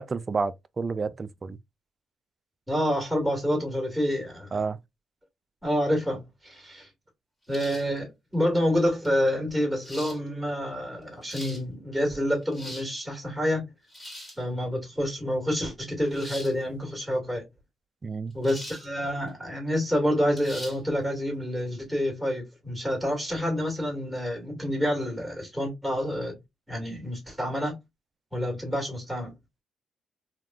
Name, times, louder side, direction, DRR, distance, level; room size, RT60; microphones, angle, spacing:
voice 1, 0.0-1.6 4.5-4.8 18.0-18.3, right 4 dB, 35° right, 0.3 m, -30 dB
voice 2, 2.7-4.6 5.6-6.9 7.5-13.6 14.4-17.4 18.3-26.3 26.7-27.8 28.3-29.3, equal, 5° right, 1.7 m, -28 dB
sound 1, 7.5-8.0 9.0-9.1 9.8-10.2 11.0-11.6 12.4-12.9 13.9-14.4 16.1-16.5 18.4-18.9 19.3-19.4 20.4-20.8, equal, 15° left, 1.4 m, -41 dB
3.4 x 2.4 x 2.3 m
cardioid pair, 90°, 0 cm